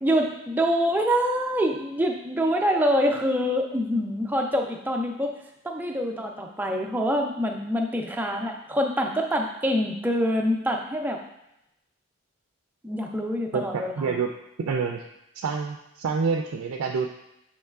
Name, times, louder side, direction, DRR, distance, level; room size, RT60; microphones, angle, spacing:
voice 1, 0.0-5.4 5.6-11.2 12.8-14.2, equal, 10° right, 1 dB, 0.3 m, -25 dB
voice 2, 13.5-14.3 14.6-15.0 15.3-17.1, right 5 dB, 85° right, 2 dB, 0.3 m, -27 dB
6.4 x 3.0 x 2.3 m, 0.87 s
head